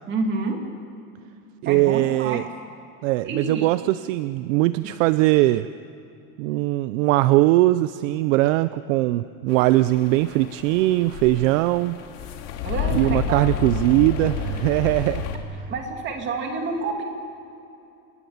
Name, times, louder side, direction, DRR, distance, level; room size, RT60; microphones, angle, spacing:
voice 1, 0.1-0.6 1.6-2.4 3.2-3.7 12.6-13.5 15.7-17.0, right 3 dB, 25° right, 3 dB, 2.5 m, -28 dB
voice 2, 1.6-2.4 3.0-5.7 6.4-12.0 12.9-15.3, right 17 dB, 60° right, 14 dB, 0.6 m, -20 dB
sound 1, 9.5-15.4, left 7 dB, 55° left, 2.6 m, -30 dB
27.5 x 19.5 x 7.1 m, 2.7 s
cardioid pair, 180°, 43 cm